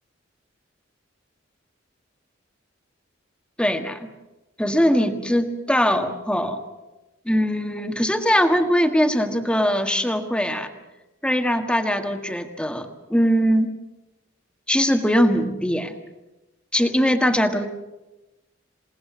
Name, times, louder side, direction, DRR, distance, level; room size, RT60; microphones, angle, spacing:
voice 1, 3.6-4.1 4.6-6.6 7.2-10.7 11.2-13.7 14.7-15.9 16.7-17.7, equal, 5° left, 6 dB, 1.7 m, -21 dB
28.0 x 18.0 x 7.4 m, 1.0 s
head